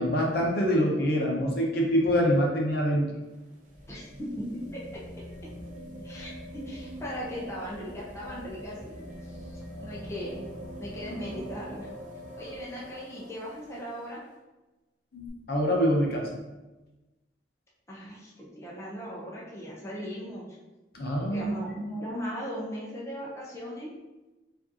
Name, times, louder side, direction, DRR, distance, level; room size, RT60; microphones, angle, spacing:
voice 1, 0.0-3.1 15.1-16.4 20.9-21.6, equal, 60° left, -1 dB, 0.7 m, -25 dB
sound 1, 3.1-14.1 15.3-15.4, equal, 45° right, 0.7 m, -43 dB
voice 2, 3.9-5.0 6.0-10.4 10.8-11.9 12.4-14.2 17.9-20.6 21.2-24.0, equal, 15° left, -5 dB, 0.6 m, -38 dB
4.8 x 2.6 x 2.8 m, 1.1 s
head